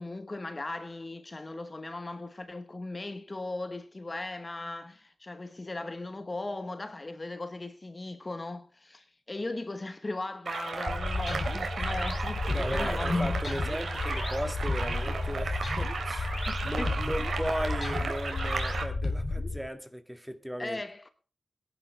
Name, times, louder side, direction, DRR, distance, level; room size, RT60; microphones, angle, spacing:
voice 1, 0.0-13.4 16.5-16.9 20.6-21.1, left 2 dB, 30° left, 1.1 m, -37 dB
sound 1, 10.5-18.8, right 4 dB, 80° right, 3.2 m, -35 dB
sound 2, 10.9-19.6, left 3 dB, 45° left, 4.2 m, -32 dB
voice 2, 12.5-16.3 16.6-20.8, equal, 5° right, 1.9 m, -36 dB
22.0 x 11.5 x 3.3 m
wide cardioid pair, 100°, 0 cm